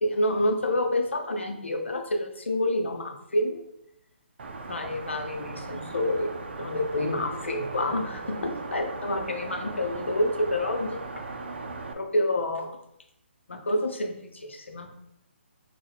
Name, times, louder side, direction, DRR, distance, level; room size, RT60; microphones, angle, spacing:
voice 1, 0.0-3.6 4.7-6.3 6.6-11.0 11.9-12.8 13.5-14.9, left 1 dB, 75° left, 4 dB, 0.7 m, -28 dB
sound 1, 4.4-11.9, right 3 dB, 60° right, 0.5 m, -38 dB
5.4 x 2.3 x 3.4 m, 0.77 s
figure-of-eight pair, 135°, 7 cm